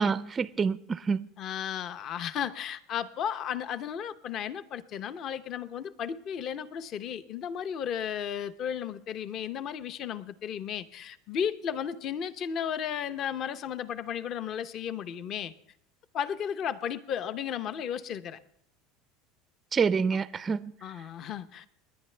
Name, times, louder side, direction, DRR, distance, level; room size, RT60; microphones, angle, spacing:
voice 1, 0.0-1.3 19.7-20.7, right 5 dB, 20° right, 0.4 m, -27 dB
voice 2, 1.4-15.5 16.1-18.4 20.8-21.7, left 8 dB, 40° left, 0.7 m, -34 dB
28.5 x 10.5 x 3.3 m
supercardioid pair, 135°, 0 cm